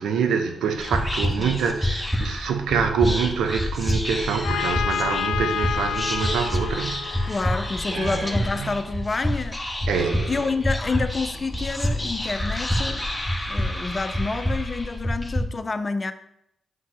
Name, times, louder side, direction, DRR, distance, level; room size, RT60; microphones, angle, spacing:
voice 1, 0.0-7.4 7.9-8.7 9.9-10.3, right 6 dB, 80° right, 0.7 m, -26 dB
Whispering, 0.7-15.4, equal, 10° left, 1.5 m, -27 dB
Trumpet, 4.4-8.2, left 9 dB, 80° left, 0.3 m, -30 dB
voice 2, 7.3-9.6 10.0-13.1 13.5-16.1, left 3 dB, 40° left, 0.7 m, -28 dB
9.3 x 5.8 x 2.7 m
supercardioid pair, 40°, 0 cm